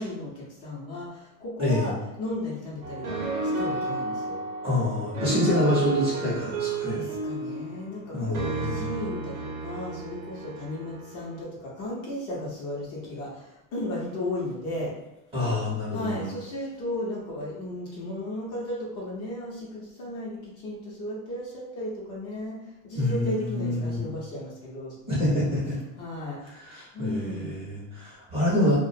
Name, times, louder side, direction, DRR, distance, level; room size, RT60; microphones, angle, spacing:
voice 1, 0.0-4.4 6.9-14.9 15.9-25.4 26.0-26.4 26.9-27.6, left 1 dB, 35° left, -4 dB, 0.7 m, -35 dB
voice 2, 1.6-1.9 4.6-7.0 8.1-8.8 15.3-16.3 22.9-24.1 25.1-25.8 26.5-28.8, left 1 dB, 15° right, -8 dB, 0.7 m, -27 dB
sound 1, 2.8-11.4, right 3 dB, 55° right, 0.7 m, -32 dB
2.3 x 2.1 x 2.6 m, 0.97 s
supercardioid pair, 145°, 40 cm